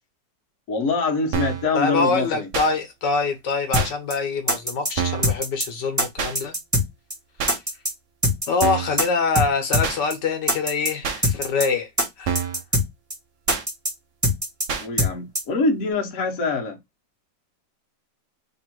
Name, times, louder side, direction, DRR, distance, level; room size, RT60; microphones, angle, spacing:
voice 1, 0.7-2.5 14.8-16.8, left 3 dB, 55° left, 1.4 m, -24 dB
sound 1, 1.3-1.7 2.5-2.7 3.7-3.9 5.0-5.3 6.2-6.3 7.4-7.6 8.6-9.0 9.8-10.0 11.0-11.2 12.2-12.6 13.5-13.6 14.7-14.9, right 7 dB, 60° right, 0.8 m, -26 dB
voice 2, 1.7-6.5 7.4-7.6 8.5-11.9 12.2-12.4, left 4 dB, 75° left, 1.5 m, -24 dB
sound 2, 3.7-3.8 4.1-4.2 4.5-4.9 5.2-5.7 6.0-6.1 6.3-6.8 7.1-7.2 7.5-7.9 8.2-8.7 9.0-9.1 9.3-9.5 9.7-9.8 10.1-10.2 10.5-10.9 11.2-11.7 12.0-12.1 12.3-12.8 13.1-13.2 13.5-13.9 14.2-14.7 15.0-15.1 15.3-15.4, equal, 15° right, 0.8 m, -21 dB
3.6 x 2.4 x 4.4 m
omnidirectional pair, 1.9 m